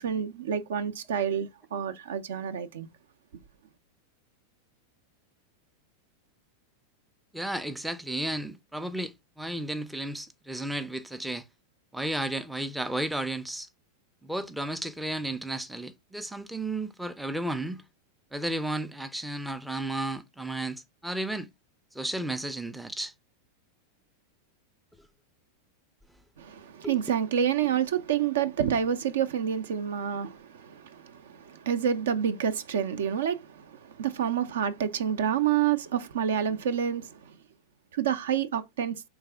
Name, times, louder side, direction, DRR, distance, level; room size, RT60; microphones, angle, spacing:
voice 1, 0.0-2.9 26.4-37.4 37.9-39.0, right 8 dB, 60° right, 0.5 m, -28 dB
voice 2, 7.3-11.4 11.9-13.7 14.2-17.8 18.3-21.5 21.9-23.1 26.8-27.0, right 1 dB, 5° right, 0.4 m, -33 dB
4.7 x 3.4 x 3.3 m
figure-of-eight pair, 90°, 0 cm